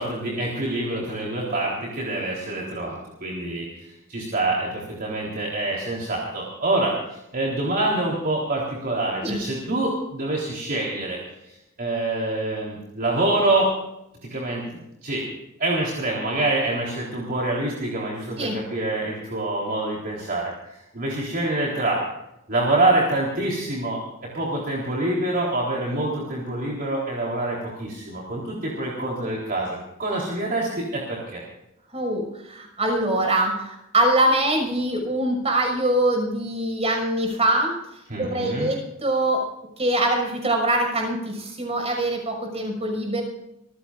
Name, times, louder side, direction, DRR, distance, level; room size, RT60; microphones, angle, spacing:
voice 1, 0.0-11.2 11.8-13.7 14.2-15.3 15.6-22.1 22.5-29.7 30.0-31.4 38.1-38.7, right 2 dB, 45° right, -3 dB, 3.9 m, -26 dB
voice 2, 31.9-37.7 38.2-39.4 39.8-43.2, right 1 dB, 30° right, 2 dB, 6.1 m, -23 dB
27.0 x 15.5 x 2.6 m, 0.86 s
head